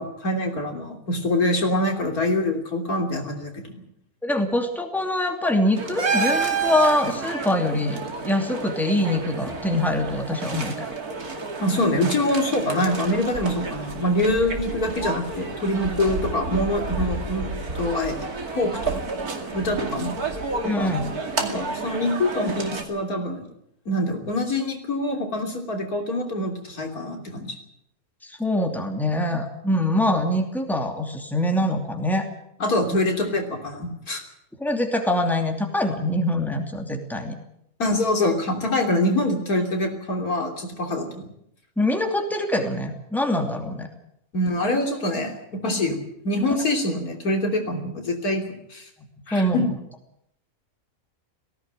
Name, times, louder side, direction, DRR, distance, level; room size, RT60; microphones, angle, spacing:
voice 1, 0.0-3.8 11.6-18.2 18.5-19.0 19.5-20.2 20.6-20.9 21.3-23.5 23.9-27.5 32.6-34.2 37.8-41.3 44.3-46.0 46.2-48.9 49.3-49.7, left 1 dB, 80° left, 3 dB, 3.6 m, -25 dB
voice 2, 4.2-8.0 8.2-10.9 20.6-21.1 28.2-32.2 34.6-37.3 41.8-43.9 49.3-49.7, left 1 dB, ahead, 3 dB, 2.7 m, -24 dB
sound 1, 5.7-22.8, right 4 dB, 90° right, 3.0 m, -30 dB
18.5 x 16.5 x 9.2 m, 0.76 s
omnidirectional pair, 1.5 m